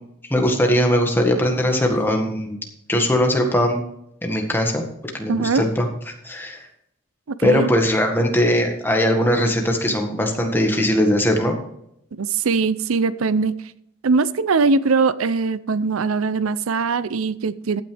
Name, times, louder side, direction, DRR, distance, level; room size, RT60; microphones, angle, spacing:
voice 1, 0.3-2.6 2.9-3.8 4.2-4.8 5.1-5.9 6.2-6.7 7.4-11.6, equal, 10° left, 2 dB, 1.7 m, -20 dB
voice 2, 5.3-5.7 7.3-7.7 12.1-13.6 14.0-17.8, right 4 dB, 85° right, 16 dB, 0.6 m, -21 dB
15.0 x 9.2 x 3.4 m, 0.77 s
head